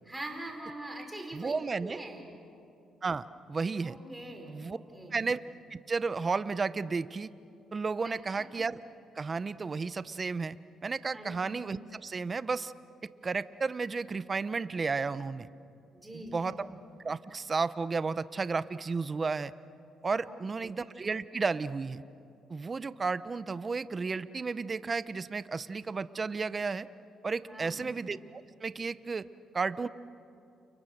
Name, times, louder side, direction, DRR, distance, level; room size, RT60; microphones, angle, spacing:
voice 1, 0.1-1.5 1.8-2.3 3.8-5.2 8.4-8.5 11.1-11.4 15.9-16.8 20.2-20.3 20.6-20.7 27.5-27.8, right 1 dB, 10° right, 2 dB, 4.6 m, -43 dB
voice 2, 1.3-2.0 3.0-4.0 4.5-4.8 5.1-5.4 5.7-7.3 7.7-8.8 9.2-10.6 10.8-12.7 13.2-15.5 16.1-16.7 17.0-19.5 20.0-22.0 22.5-26.9 27.2-29.3 29.5-29.9, right 4 dB, 35° right, 15 dB, 0.8 m, -33 dB
30.0 x 29.5 x 6.6 m, 2.6 s
cardioid pair, 90°, 0 cm